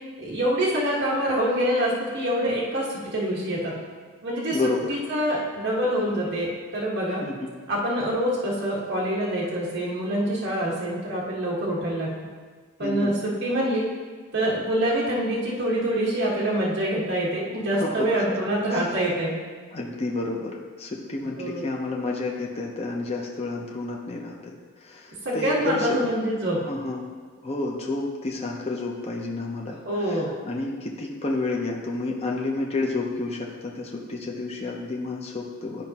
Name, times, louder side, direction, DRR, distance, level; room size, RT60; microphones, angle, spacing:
voice 1, 0.2-3.8 4.2-4.6 4.9-7.2 7.7-12.1 12.8-13.9 14.3-19.4 21.4-21.6 25.2-26.6 29.8-30.3, right 1 dB, 55° right, -6 dB, 1.4 m, -25 dB
voice 2, 4.5-4.9 7.2-7.5 12.8-13.1 17.8-18.4 18.7-18.9 19.7-26.1 26.6-27.1 27.4-35.9, left 3 dB, 30° left, -1 dB, 0.6 m, -30 dB
10.5 x 4.9 x 2.8 m, 1.5 s
head